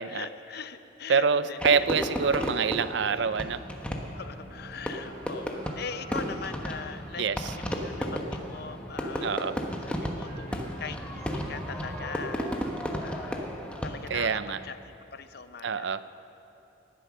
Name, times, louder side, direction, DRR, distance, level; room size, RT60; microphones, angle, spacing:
voice 1, 0.1-1.6 2.2-2.7 3.0-3.2 4.1-7.3 7.5-12.7 13.0-13.5 13.8-16.0, left 5 dB, 55° left, 11 dB, 0.7 m, -41 dB
voice 2, 1.1-3.6 7.2-7.5 9.2-9.6 14.1-14.6 15.6-16.1, right 5 dB, 60° right, 14 dB, 0.5 m, -26 dB
Fireworks, 1.6-14.3, equal, 5° left, 1.2 m, -34 dB
sound 1, 3.1-14.7, right 1 dB, 30° left, 2.6 m, -49 dB
sound 2, 4.4-8.1 10.2-12.6, right 1 dB, 35° right, 4.1 m, -50 dB
19.0 x 12.5 x 6.2 m, 2.8 s
head